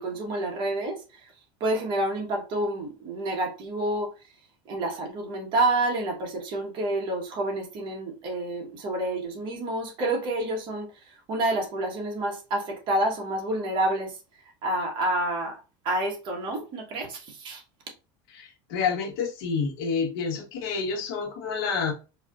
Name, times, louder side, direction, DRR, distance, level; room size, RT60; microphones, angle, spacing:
voice 1, 0.0-1.3 1.6-4.1 4.6-14.2 14.6-17.6, right 1 dB, 40° right, 1.3 m, -29 dB
voice 2, 18.3-21.9, left 5 dB, 75° left, 1.3 m, -29 dB
4.5 x 2.8 x 2.5 m
supercardioid pair, 150°, 12 cm